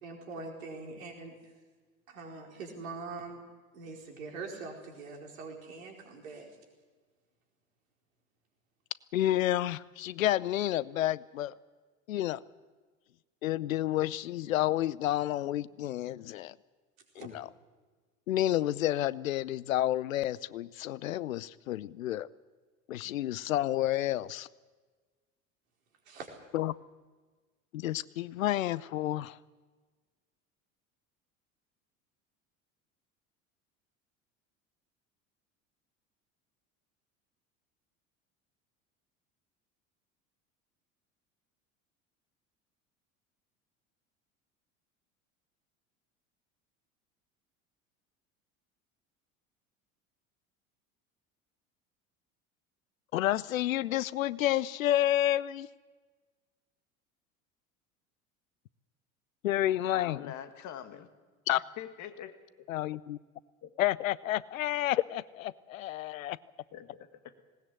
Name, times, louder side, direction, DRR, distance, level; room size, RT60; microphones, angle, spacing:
voice 1, 0.0-1.5 2.1-3.4 3.7-6.5 17.2-17.3 26.0-26.3, right 4 dB, 75° right, 0 dB, 4.7 m, -43 dB
voice 2, 9.1-11.5 12.1-12.4 13.4-16.5 17.2-17.5 18.3-22.3 22.9-24.5 26.5-26.7 27.7-29.4 53.1-55.7 59.4-60.3 61.5-61.6 62.7-63.2 63.8-66.4, left 13 dB, 75° left, 21 dB, 0.7 m, -30 dB
voice 3, 59.9-61.1 61.8-62.4 63.6-63.7 66.7-67.4, left 10 dB, 45° left, 9 dB, 1.9 m, -44 dB
20.0 x 19.0 x 7.9 m, 1.4 s
figure-of-eight pair, 70°, 41 cm